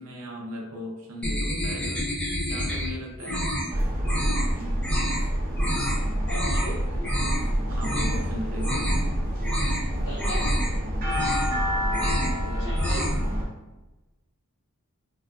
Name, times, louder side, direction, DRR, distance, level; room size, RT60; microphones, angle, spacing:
voice 1, 0.0-2.0 2.4-3.5 4.5-5.2 6.9-8.9 12.2-12.7, left 1 dB, 75° right, -1 dB, 0.5 m, -38 dB
sound 1, 1.2-2.9 3.2-3.7 4.0-4.5 4.8-5.2 5.6-6.0 6.3-6.7 7.0-7.4 7.8-8.2 8.5-9.1 9.4-9.8 10.2-10.7 11.0-11.6 11.9-12.4 12.7-13.2, equal, 5° left, 0.5 m, -28 dB
sound 2, 3.7-13.4, equal, 40° right, 0.7 m, -27 dB
voice 2, 6.3-6.8 9.9-10.5 12.6-13.1, equal, 75° left, -7 dB, 0.8 m, -37 dB
3.7 x 2.4 x 2.3 m, 1.1 s
head